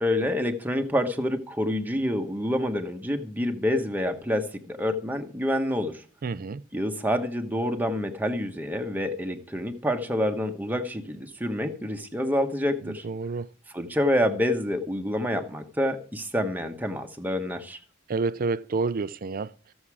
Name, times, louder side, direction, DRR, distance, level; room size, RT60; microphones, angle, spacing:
voice 1, 0.0-6.0 6.7-13.0 13.7-17.8, left 1 dB, 10° right, 1.1 m, -27 dB
voice 2, 6.2-6.6 12.9-13.5 18.1-19.5, right 4 dB, 45° right, 0.4 m, -29 dB
14.5 x 7.2 x 4.8 m
head